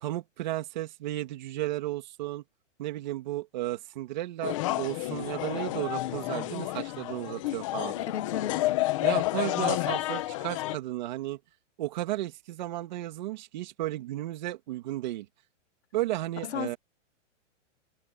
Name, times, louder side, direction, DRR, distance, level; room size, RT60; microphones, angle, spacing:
voice 1, 0.0-2.4 2.8-8.0 9.0-11.4 11.8-15.3 15.9-16.8, right 15 dB, 35° right, 2.7 m, -34 dB
sound 1, 4.4-10.8, left 17 dB, 25° left, 1.4 m, -30 dB
voice 2, 8.0-8.7 16.4-16.8, left 10 dB, 60° left, 1.4 m, -34 dB
hypercardioid pair, 180°, 38 cm